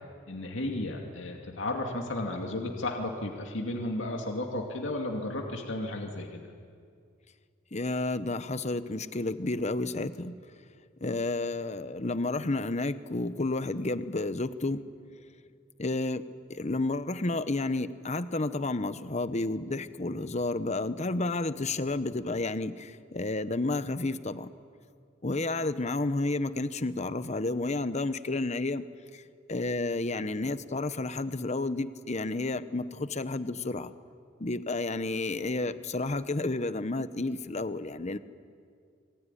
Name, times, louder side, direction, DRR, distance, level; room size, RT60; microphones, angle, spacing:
voice 1, 0.3-6.4, left 1 dB, 70° left, 1 dB, 2.5 m, -33 dB
voice 2, 7.7-10.4 11.0-14.9 15.8-24.5 25.2-28.8 29.1-29.2 29.5-33.9 34.4-38.2, left 2 dB, 35° left, 12 dB, 1.0 m, -31 dB
26.5 x 22.0 x 10.0 m, 2.3 s
head